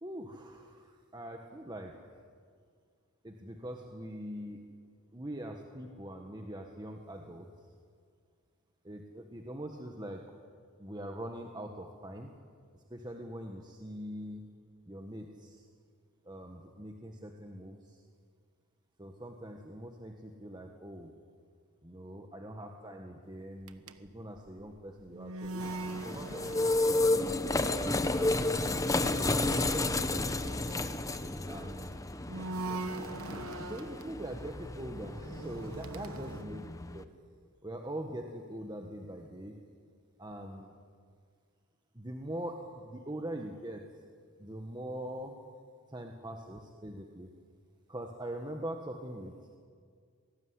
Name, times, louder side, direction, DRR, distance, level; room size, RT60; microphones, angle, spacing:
voice 1, 0.0-2.0 3.2-4.7 5.1-7.5 8.8-10.3 10.8-12.3 12.7-14.4 14.9-15.7 16.2-18.0 19.0-21.1 21.8-26.8 27.5-29.9 31.4-32.0 33.6-36.6 36.9-37.1 37.6-39.6 40.2-40.7 41.9-43.9 44.4-45.4 45.9-47.3 47.9-49.6, right 1 dB, 20° right, 2 dB, 1.5 m, -43 dB
sound 1, 23.6-27.3 27.5-27.9 28.7-31.8 32.3-34.1 34.8-36.4, right 2 dB, 80° right, 1.3 m, -42 dB
sound 2, 25.6-37.0, left 2 dB, 15° left, 1.0 m, -32 dB
26.0 x 19.0 x 9.8 m, 2.1 s
head